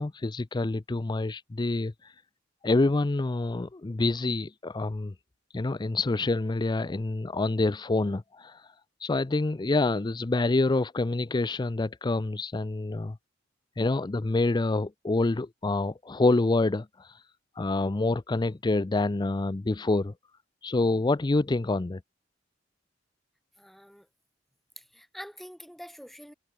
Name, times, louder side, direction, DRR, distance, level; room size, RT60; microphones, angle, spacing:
voice 1, 0.0-2.1 2.6-5.1 5.5-8.7 9.0-13.2 13.8-17.2 17.6-20.1 20.6-22.0, left 2 dB, 25° left, 0.5 m, -27 dB
voice 2, 23.6-24.1 24.8-26.3, equal, ahead, 2.7 m, -45 dB
head